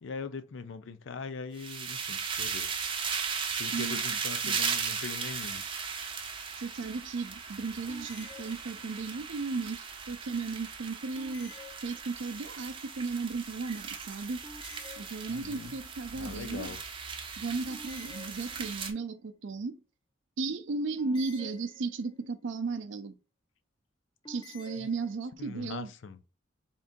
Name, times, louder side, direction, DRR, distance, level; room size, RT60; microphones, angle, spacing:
voice 1, 0.0-2.8 3.6-5.6 15.3-15.7 16.1-16.8 24.8-24.9 25.4-26.2, left 5 dB, 80° left, 0.5 m, -41 dB
sound 1, 1.6-18.9, right 6 dB, 25° right, 0.5 m, -37 dB
voice 2, 3.7-4.2 4.4-4.6 6.6-11.5 11.8-14.4 15.0-16.7 17.4-19.8 20.4-23.2 24.3-25.9, right 4 dB, 75° right, 0.5 m, -35 dB
sound 2, 7.9-9.2 11.1-12.5 14.4-15.7 17.7-19.0 21.0-22.3 24.2-25.2, left 3 dB, 25° left, 0.5 m, -51 dB
3.7 x 2.6 x 3.7 m
head